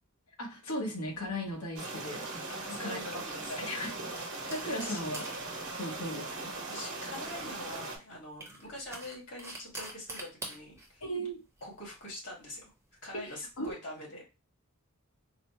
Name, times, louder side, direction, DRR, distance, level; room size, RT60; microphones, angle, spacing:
voice 1, 0.4-2.3 2.8-3.0 3.5-4.0 4.5-5.3 5.8-6.5 11.0-11.4 13.1-13.3 13.6-13.8, equal, 75° left, 1 dB, 1.1 m, -36 dB
sound 1, 1.1-13.7, right 2 dB, 15° right, 0.8 m, -49 dB
sound 2, 1.8-8.0, right 2 dB, 65° right, 1.0 m, -39 dB
voice 2, 2.5-3.9 4.3-5.0 5.7-5.9 6.7-11.0 11.6-12.6 13.0-14.2, left 1 dB, 60° left, -3 dB, 2.0 m, -45 dB
3.9 x 2.1 x 3.1 m, 0.28 s
head